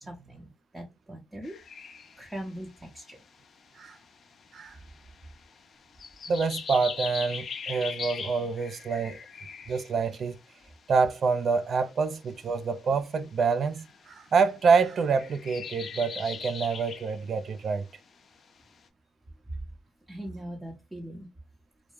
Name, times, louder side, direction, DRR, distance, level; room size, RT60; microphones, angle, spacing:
voice 1, 0.0-0.5 0.7-1.9 2.2-3.2 20.1-21.3, right 1 dB, 15° right, 0.7 m, -41 dB
sound 1, 1.4-13.4 13.7-18.1 18.4-18.7, left 6 dB, 50° left, 0.5 m, -41 dB
voice 2, 6.3-9.2 9.7-10.4 10.9-17.9, right 5 dB, 55° right, 0.4 m, -26 dB
2.2 x 2.0 x 3.0 m
supercardioid pair, 75°, 0 cm